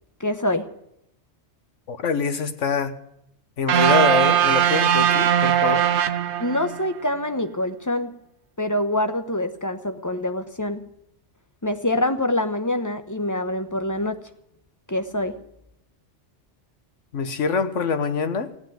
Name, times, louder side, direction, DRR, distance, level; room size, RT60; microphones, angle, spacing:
voice 1, 0.2-0.7 6.4-8.1 8.6-10.8 11.6-14.2 14.9-15.4, left 1 dB, 15° left, 8 dB, 1.0 m, -25 dB
voice 2, 1.9-2.9 3.6-5.8 17.1-18.5, left 5 dB, 80° left, 9 dB, 1.5 m, -24 dB
sound 1, 3.7-6.9, right 9 dB, 70° right, 1.1 m, -20 dB
16.0 x 9.2 x 9.2 m, 0.78 s
omnidirectional pair, 1.2 m